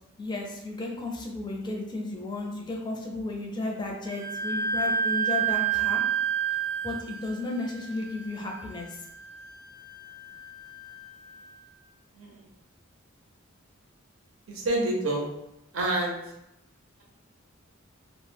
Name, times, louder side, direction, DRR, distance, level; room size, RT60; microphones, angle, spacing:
voice 1, 0.2-6.0 6.8-8.9, left 2 dB, 20° left, 0 dB, 0.4 m, -33 dB
Wind instrument woodwind instrument, 4.1-11.5, right 7 dB, 20° right, 0.6 m, -31 dB
voice 2, 14.5-15.3 15.7-16.2, right 1 dB, 80° right, -1 dB, 0.6 m, -27 dB
2.0 x 2.0 x 3.3 m, 0.85 s
head